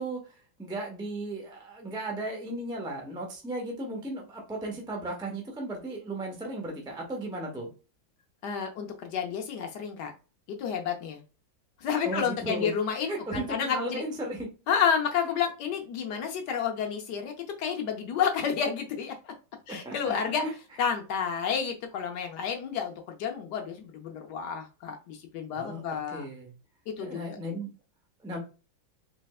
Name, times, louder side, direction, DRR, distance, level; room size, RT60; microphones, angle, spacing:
voice 1, 0.0-7.7 12.0-12.7 13.1-14.5 19.7-20.1 20.4-20.5 25.5-26.5 27.0-27.7 28.2-28.4, right 1 dB, 5° right, 0 dB, 0.3 m, -35 dB
voice 2, 8.4-10.1 10.5-11.2 11.8-14.0 14.7-19.3 19.7-20.4 20.8-26.2 26.9-27.4, left 7 dB, 70° left, 3 dB, 1.2 m, -30 dB
4.1 x 3.2 x 2.3 m, 0.33 s
omnidirectional pair, 2.1 m